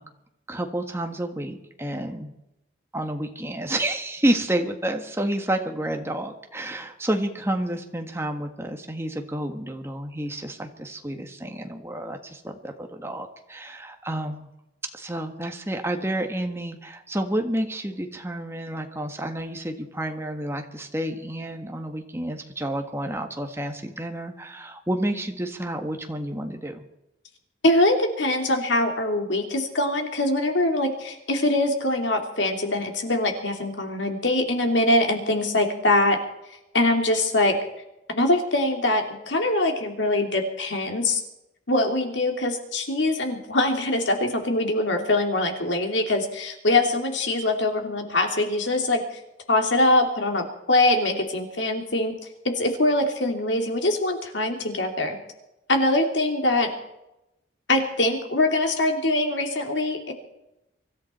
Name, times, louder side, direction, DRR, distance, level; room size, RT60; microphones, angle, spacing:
voice 1, 0.5-2.3 2.9-14.5 14.9-26.8, right 1 dB, 15° right, 4 dB, 1.6 m, -30 dB
voice 2, 27.6-36.2 36.7-37.6 38.1-41.2 41.7-49.0 49.5-52.2 52.4-55.2 55.7-56.7 57.7-60.1, left 2 dB, 80° left, 4 dB, 2.9 m, -23 dB
24.5 x 13.0 x 4.4 m, 0.89 s
head